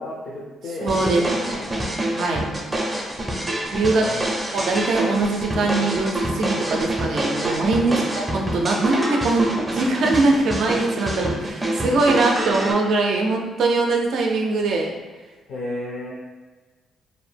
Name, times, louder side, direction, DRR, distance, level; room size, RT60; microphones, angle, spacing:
voice 1, 0.0-1.8 3.9-4.2 7.9-8.0 15.5-16.1, left 1 dB, 65° left, -5 dB, 0.5 m, -32 dB
voice 2, 0.8-1.2 2.2-2.4 3.7-4.1 4.5-15.0, right 3 dB, 70° right, 1 dB, 0.4 m, -22 dB
sound 1, 0.9-12.7, right 1 dB, 15° right, 0.5 m, -26 dB
2.6 x 2.0 x 3.2 m, 1.3 s
cardioid pair, 90°, 0 cm